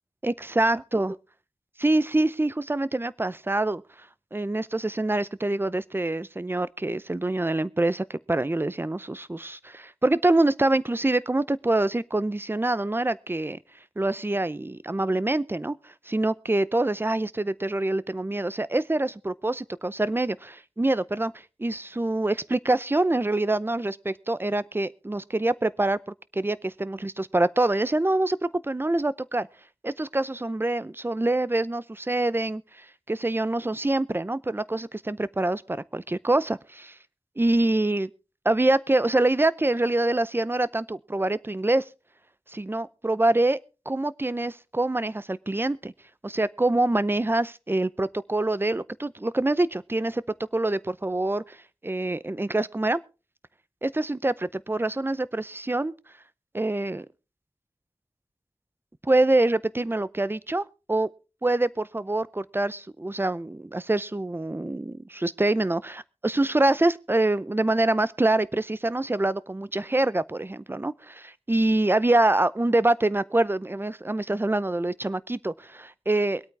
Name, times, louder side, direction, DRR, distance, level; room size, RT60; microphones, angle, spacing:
voice 1, 0.2-1.1 1.8-13.6 14.0-26.0 26.3-29.5 29.8-37.0 37.4-38.1 38.4-41.8 42.5-43.6 43.9-45.9 46.2-50.2 50.5-51.6 51.8-53.0 53.8-55.9 56.5-57.1 59.0-61.1 61.4-76.4, right 2 dB, 20° right, 0.6 m, -25 dB
23.0 x 8.8 x 3.4 m
wide cardioid pair, 75°, 10 cm